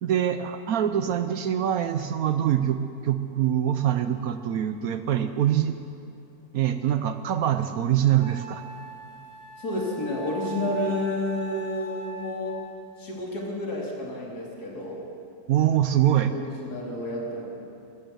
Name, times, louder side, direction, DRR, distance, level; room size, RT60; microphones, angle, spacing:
voice 1, 0.0-5.8 6.5-8.6 15.5-16.3, right 10 dB, 65° right, 10 dB, 1.0 m, -24 dB
Wind instrument woodwind instrument, 7.5-7.6 8.2-12.8, right 4 dB, 25° left, 1.9 m, -40 dB
voice 2, 9.6-12.6 13.0-15.0 16.3-17.5, left 1 dB, 65° left, -3 dB, 3.3 m, -30 dB
15.5 x 13.5 x 6.8 m, 2.7 s
omnidirectional pair, 1.8 m